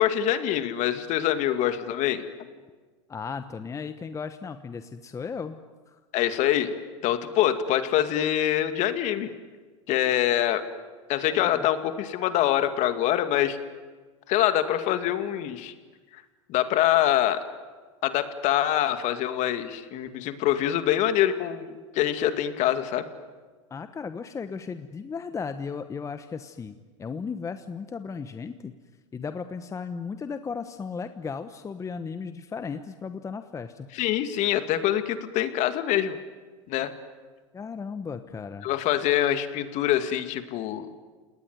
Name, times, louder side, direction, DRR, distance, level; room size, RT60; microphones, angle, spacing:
voice 1, 0.0-2.2 6.1-6.7 7.0-9.3 9.9-10.6 11.1-13.6 14.3-15.7 16.5-17.4 18.0-21.7 21.9-23.0 33.9-36.2 36.7-36.9 38.6-40.9, left 12 dB, 50° left, 9 dB, 2.3 m, -24 dB
voice 2, 3.1-6.0 11.3-11.7 23.7-28.7 29.1-33.9 37.5-38.7, left 5 dB, 20° left, 10 dB, 1.2 m, -35 dB
29.0 x 19.5 x 9.6 m, 1.4 s
hypercardioid pair, 105°, 16 cm